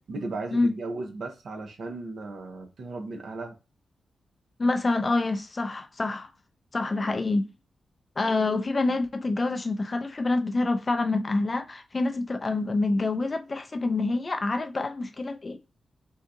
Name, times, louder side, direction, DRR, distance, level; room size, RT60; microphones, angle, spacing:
voice 1, 0.1-3.6, right 3 dB, 60° right, 0.6 m, -36 dB
voice 2, 4.6-6.3 6.7-7.5 8.2-15.6, left 2 dB, 25° left, 0.3 m, -26 dB
3.4 x 2.7 x 2.6 m
wide cardioid pair, 170°, 0 cm